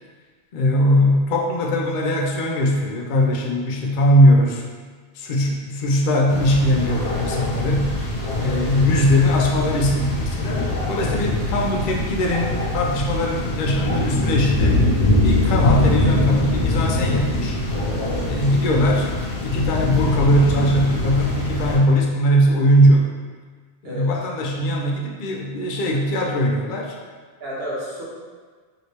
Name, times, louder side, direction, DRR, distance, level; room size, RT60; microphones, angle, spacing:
voice 1, 0.5-4.7 5.1-7.9 8.4-14.8 15.2-17.6 18.2-19.1 19.4-23.1 23.8-27.0, equal, 60° left, 0 dB, 0.6 m, -20 dB
sound 1, 6.3-21.8, left 2 dB, 85° left, 1.0 m, -23 dB
voice 2, 27.4-28.0, equal, 65° right, -6 dB, 1.0 m, -31 dB
3.1 x 2.9 x 2.8 m, 1.5 s
omnidirectional pair, 1.1 m